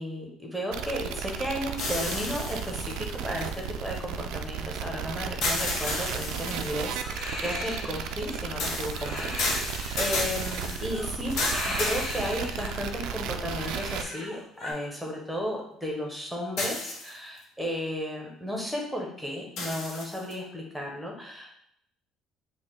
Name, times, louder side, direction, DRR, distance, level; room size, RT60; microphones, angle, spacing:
voice 1, 0.0-7.0 7.4-21.5, equal, ahead, -1 dB, 0.8 m, -34 dB
sound 1, 0.7-14.0, right 7 dB, 75° right, 0.3 m, -35 dB
sound 2, 1.8-4.0 5.4-7.0 8.6-12.9 13.5-13.6 16.6-17.4 19.6-20.3, left 2 dB, 65° left, 1.0 m, -32 dB
Crying sobbing, 5.5-14.7, left 1 dB, 30° left, 1.2 m, -38 dB
4.6 x 2.1 x 3.8 m, 0.71 s
cardioid pair, 160°, 0 cm